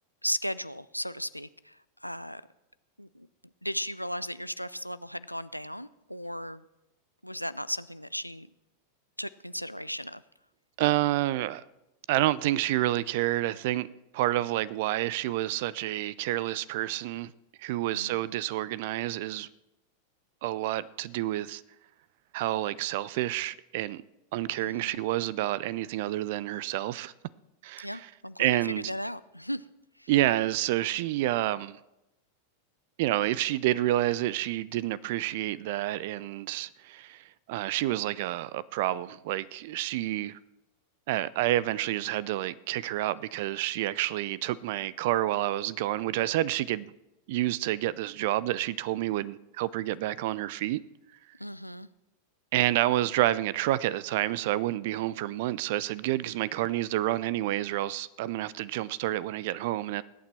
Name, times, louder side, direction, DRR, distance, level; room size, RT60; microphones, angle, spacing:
voice 1, 0.2-2.4 3.0-3.3 3.6-6.6 7.2-8.5 9.2-10.2 17.9-18.2 24.6-25.0 27.8-29.7 30.0-30.1 51.4-51.9, equal, 90° left, 0.4 m, -36 dB
voice 2, 10.8-11.6 12.1-13.9 14.1-17.3 17.6-19.5 20.4-21.6 22.3-24.0 24.3-27.1 27.6-28.0 28.4-28.9 30.1-31.8 33.0-40.4 41.1-46.9 47.3-50.8 52.5-60.0, right 15 dB, 50° right, 0.4 m, -29 dB
20.5 x 8.8 x 4.3 m
figure-of-eight pair, 90°, 0 cm